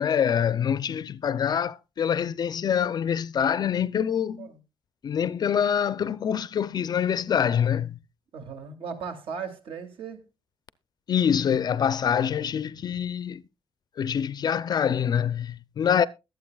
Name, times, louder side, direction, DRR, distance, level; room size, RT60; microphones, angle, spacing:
voice 1, 0.0-4.5 5.0-8.0 11.1-13.4 14.0-16.1, left 8 dB, 40° left, 0.5 m, -25 dB
voice 2, 8.3-10.3, right 6 dB, 65° right, 2.6 m, -37 dB
21.5 x 8.0 x 2.3 m
cardioid pair, 150°, 10 cm